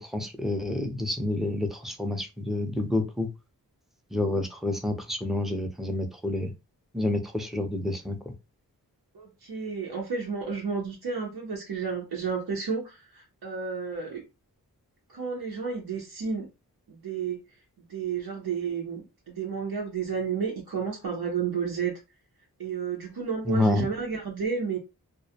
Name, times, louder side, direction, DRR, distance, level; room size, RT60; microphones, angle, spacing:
voice 1, 0.0-3.3 4.1-6.5 6.9-8.3 23.4-23.9, left 2 dB, ahead, 0.5 m, -28 dB
voice 2, 9.1-14.2 15.1-16.5 16.9-17.4 17.9-19.0 19.3-21.9 22.6-24.8, right 6 dB, 85° right, 0.7 m, -31 dB
2.3 x 2.1 x 2.7 m
wide cardioid pair, 55°, 37 cm